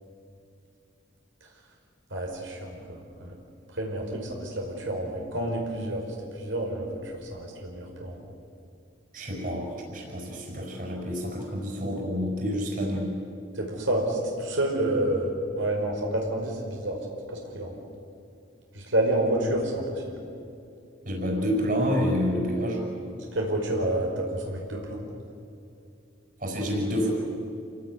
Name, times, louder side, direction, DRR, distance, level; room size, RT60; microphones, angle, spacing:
voice 1, 2.1-3.3 3.7-6.0 6.4-8.2 13.5-17.0 17.3-17.7 18.7-20.1 23.3-25.0, right 1 dB, 85° right, 0 dB, 5.1 m, -29 dB
voice 2, 9.1-13.1 21.0-22.8 26.4-27.1, equal, 45° right, 0 dB, 5.9 m, -28 dB
28.5 x 18.0 x 9.6 m, 2.5 s
head